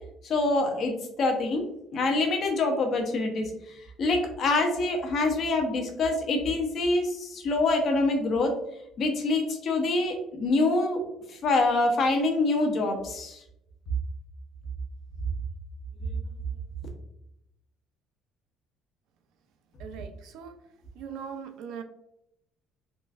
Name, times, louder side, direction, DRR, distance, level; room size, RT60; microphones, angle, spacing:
voice 1, 0.2-1.6 1.9-3.4 4.0-8.5 9.0-11.0 11.3-13.4 16.0-16.1, left 2 dB, 45° left, 3 dB, 0.7 m, -25 dB
voice 2, 19.8-20.6 20.9-21.8, right 7 dB, 70° right, 7 dB, 0.4 m, -40 dB
3.7 x 2.4 x 2.4 m, 0.80 s
cardioid pair, 140°, 0 cm